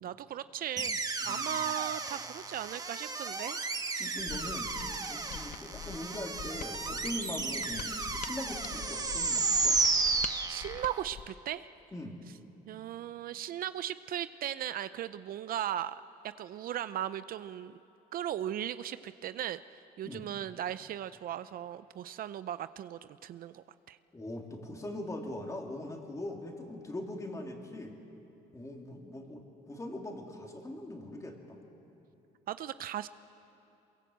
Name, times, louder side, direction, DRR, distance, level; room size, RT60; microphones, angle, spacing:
voice 1, 0.0-1.0 1.2-3.6 3.9-4.2 10.5-11.7 12.7-16.0 16.2-17.8 18.1-24.0 32.5-33.1, right 11 dB, 60° right, 14 dB, 0.6 m, -37 dB
sound 1, 0.8-11.1, right 3 dB, 20° right, 1.4 m, -33 dB
voice 2, 1.2-1.6 4.0-4.7 5.1-9.8 11.9-12.2 20.1-20.2 24.1-28.0 28.5-31.6, left 1 dB, 20° left, 2 dB, 3.1 m, -41 dB
Mechanisms, 4.2-11.4, left 9 dB, 55° left, 0.8 m, -45 dB
23.5 x 22.5 x 8.1 m, 2.8 s
cardioid pair, 110°, 17 cm